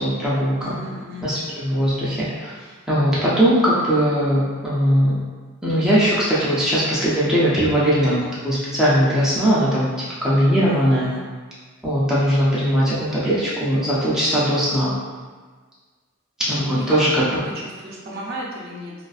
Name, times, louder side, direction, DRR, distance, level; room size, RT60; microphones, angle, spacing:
voice 1, 0.0-0.8 1.2-2.5 2.9-5.2 5.6-11.1 11.8-15.0 16.4-17.4, equal, 5° right, -9 dB, 0.5 m, -20 dB
voice 2, 0.6-1.3 10.7-11.2 16.5-17.0 17.8-18.9, equal, 50° right, -5 dB, 0.6 m, -34 dB
2.4 x 2.4 x 2.4 m, 1.4 s
head